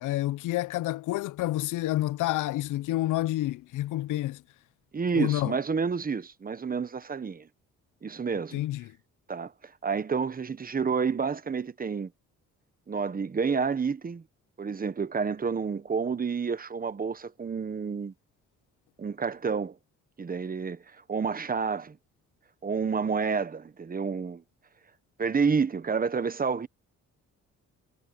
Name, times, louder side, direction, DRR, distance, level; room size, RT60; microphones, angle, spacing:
voice 1, 0.0-4.4 5.1-5.6 8.5-8.9, left 16 dB, 80° left, 0.6 m, -29 dB
voice 2, 4.9-7.5 8.0-8.6 9.3-9.5 9.8-12.1 12.9-14.2 14.6-18.1 19.0-19.7 20.2-20.8 21.1-22.0 22.6-24.4 25.2-26.7, right 5 dB, 30° right, 1.1 m, -29 dB
cardioid pair, 90°, 30 cm